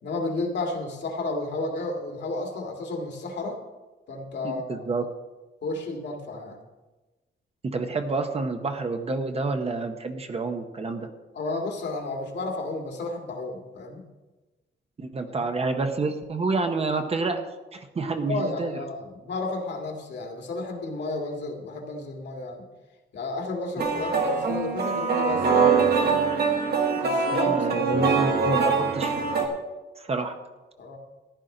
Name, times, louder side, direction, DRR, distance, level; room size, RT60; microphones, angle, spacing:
voice 1, 0.0-3.6 4.1-4.9 5.6-6.6 11.3-14.1 15.4-15.5 18.2-22.7 23.1-26.2 26.9-28.1 30.8-31.0, left 2 dB, 65° left, 2 dB, 2.0 m, -32 dB
voice 2, 4.4-5.0 7.6-11.1 15.0-18.8 27.3-29.1 30.0-30.3, right 3 dB, 30° right, 7 dB, 0.8 m, -29 dB
sound 1, 23.8-29.5, right 5 dB, 55° right, 1.7 m, -23 dB
14.5 x 11.0 x 3.9 m, 1.2 s
wide cardioid pair, 170°, 20 cm